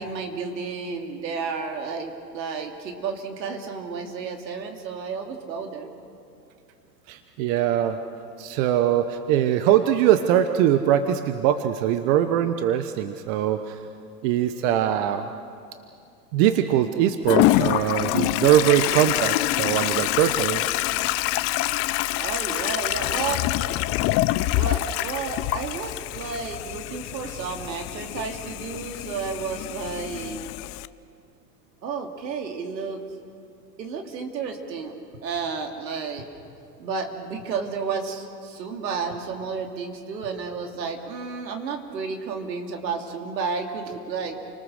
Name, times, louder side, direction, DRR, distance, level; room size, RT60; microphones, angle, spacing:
voice 1, 0.0-5.9 22.2-23.4 24.5-30.4 31.8-33.0 33.8-34.9 35.2-36.2 36.8-44.4, right 5 dB, 80° right, 4 dB, 2.9 m, -32 dB
voice 2, 7.1-8.0 8.4-13.8 14.2-15.3 16.3-20.7, right 11 dB, 50° right, 9 dB, 1.2 m, -22 dB
Toilet flush, 17.3-30.9, left 17 dB, 30° left, 0.5 m, -26 dB
29.5 x 19.5 x 6.5 m, 2.4 s
hypercardioid pair, 105°, 50 cm